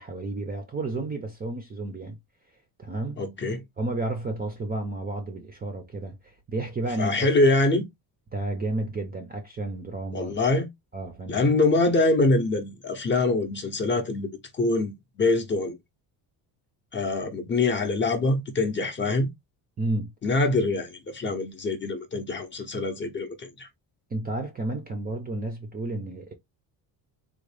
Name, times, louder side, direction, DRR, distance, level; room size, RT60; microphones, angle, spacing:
voice 1, 0.0-2.2 2.8-3.2 3.8-7.3 8.3-10.3 10.9-11.6 19.8-20.1 24.1-26.3, right 2 dB, 20° right, 0.5 m, -32 dB
voice 2, 3.2-3.6 7.0-7.9 10.1-10.7 11.3-14.3 14.6-15.8 16.9-19.3 20.2-23.7, left 2 dB, 25° left, 0.6 m, -24 dB
3.6 x 2.2 x 3.2 m
cardioid pair, 155°, 44 cm